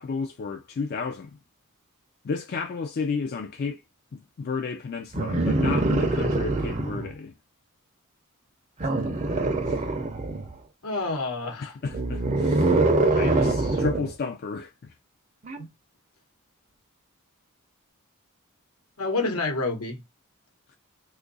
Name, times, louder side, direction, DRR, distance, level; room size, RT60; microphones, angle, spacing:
voice 1, 0.0-1.4 2.2-3.8 4.1-7.3 9.7-9.8 11.6-12.8 13.1-14.9, left 4 dB, 45° left, 0.4 m, -32 dB
sound 1, 5.1-7.1 8.8-10.5 11.8-14.1 15.5-15.6, right 2 dB, 30° right, 0.5 m, -24 dB
voice 2, 10.8-11.7 13.2-13.6 15.6-15.7 19.0-20.0, left 3 dB, 80° left, 1.1 m, -29 dB
2.6 x 2.5 x 3.9 m
head